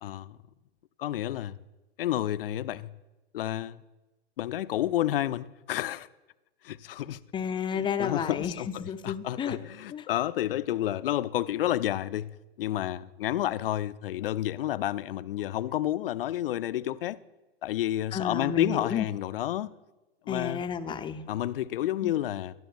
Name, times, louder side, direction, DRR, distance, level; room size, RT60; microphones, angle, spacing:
voice 1, 0.0-0.4 1.0-1.6 2.0-2.9 3.3-3.8 4.4-6.1 6.6-7.2 7.7-12.3 12.6-17.2 17.6-19.7 20.3-20.6 21.3-22.5, left 13 dB, 60° left, 0.6 m, -30 dB
voice 2, 7.3-9.6 9.9-10.1 18.1-19.1 20.3-21.3 22.0-22.1, left 7 dB, 15° left, 0.7 m, -32 dB
23.5 x 12.5 x 2.5 m
figure-of-eight pair, 100°, 32 cm